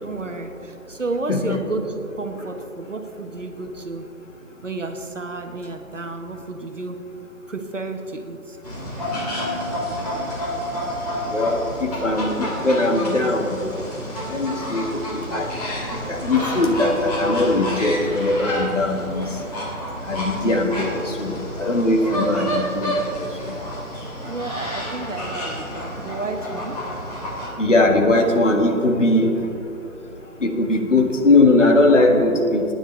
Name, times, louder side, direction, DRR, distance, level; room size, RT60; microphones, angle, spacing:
voice 1, 0.0-1.8 2.2-4.0 4.6-7.0 7.5-8.6 24.2-26.8, right 3 dB, 60° right, 6 dB, 1.2 m, -31 dB
sound 1, 8.6-27.5, equal, 25° left, 2.6 m, -29 dB
voice 2, 11.3-13.6 14.3-15.5 16.1-19.3 20.1-23.5 27.6-29.3 30.4-32.7, left 2 dB, 55° left, 2 dB, 1.7 m, -20 dB
23.0 x 9.8 x 3.2 m, 3.0 s
figure-of-eight pair, 155°, 43 cm